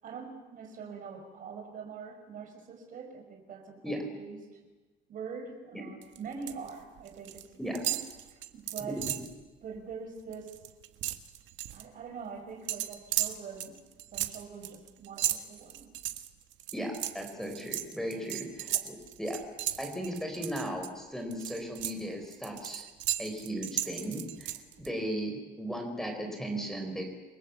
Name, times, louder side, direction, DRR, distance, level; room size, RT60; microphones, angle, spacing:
voice 1, 0.0-4.6 5.1-8.0 8.3-9.0 9.6-10.6 11.7-13.8 14.1-15.9 16.8-16.9 18.2-18.4, right 5 dB, 45° right, 4 dB, 6.2 m, -44 dB
sound 1, 6.0-6.7 7.0-7.5 7.8-9.3 9.8-9.9 10.2-11.8 12.7-20.9 21.3-24.9, right 13 dB, 80° right, 1.7 m, -35 dB
voice 2, 16.7-19.4 19.8-22.9 23.2-27.0, equal, ahead, 4 dB, 4.6 m, -36 dB
29.0 x 23.0 x 8.4 m, 1.2 s
cardioid pair, 175°, 19 cm